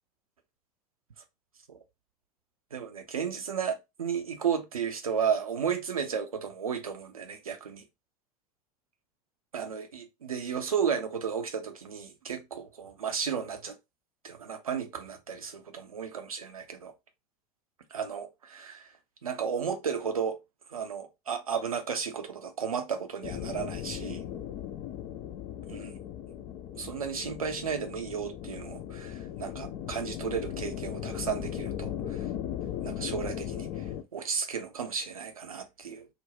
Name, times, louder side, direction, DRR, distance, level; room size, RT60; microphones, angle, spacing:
voice 1, 2.7-7.8 9.5-13.7 14.2-16.9 17.9-18.9 19.2-20.4 20.7-24.2 25.7-26.0 26.7-32.3 32.8-36.1, right 7 dB, 80° right, 0.5 m, -33 dB
sound 1, 23.2-34.0, left 10 dB, 40° left, 0.4 m, -37 dB
2.4 x 2.2 x 3.2 m
figure-of-eight pair, 75°, 18 cm